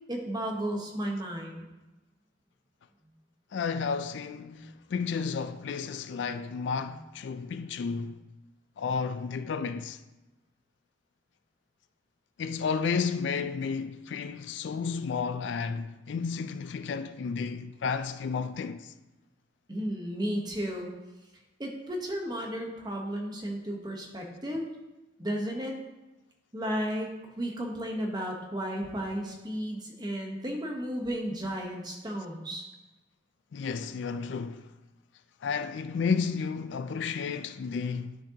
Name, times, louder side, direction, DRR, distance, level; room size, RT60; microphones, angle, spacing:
voice 1, 0.1-1.7 4.5-4.7 19.7-20.9 21.6-24.6 25.2-25.7 26.5-27.1 27.4-32.7, equal, 20° right, 1.1 m, -33 dB
voice 2, 3.5-8.2 8.8-10.0 12.4-18.9 33.5-34.7 35.4-38.2, left 5 dB, 65° left, 0.3 m, -32 dB
10.5 x 6.3 x 2.9 m
head